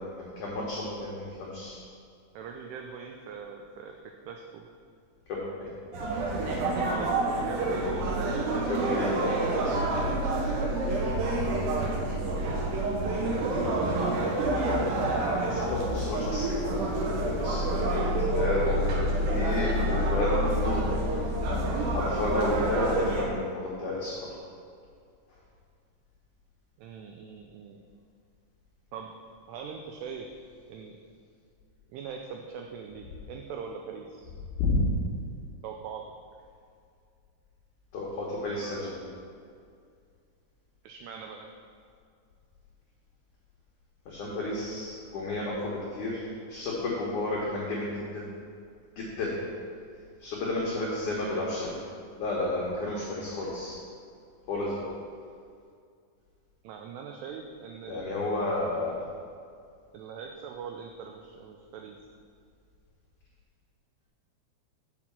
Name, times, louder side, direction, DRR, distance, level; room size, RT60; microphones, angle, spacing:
voice 1, 0.0-1.8 5.3-5.7 8.7-9.3 9.6-9.8 15.0-16.7 17.2-19.0 19.3-20.9 21.8-24.1 34.6-34.8 37.9-39.1 44.1-48.3 49.0-49.4 50.2-51.8 52.2-53.8 54.5-54.9 57.9-58.9, left 2 dB, 85° left, -5 dB, 1.7 m, -32 dB
voice 2, 2.3-4.0 4.3-4.7 6.8-9.5 26.8-27.8 28.9-29.1 29.5-30.3 30.7-31.0 31.9-34.3 35.6-36.0 40.8-41.5 56.6-58.6 59.9-62.0, right 6 dB, 90° right, 2 dB, 2.3 m, -41 dB
sound 1, 5.9-23.2, right 1 dB, 70° right, 2.3 m, -28 dB
6.2 x 5.9 x 7.2 m, 2.3 s
omnidirectional pair, 5.3 m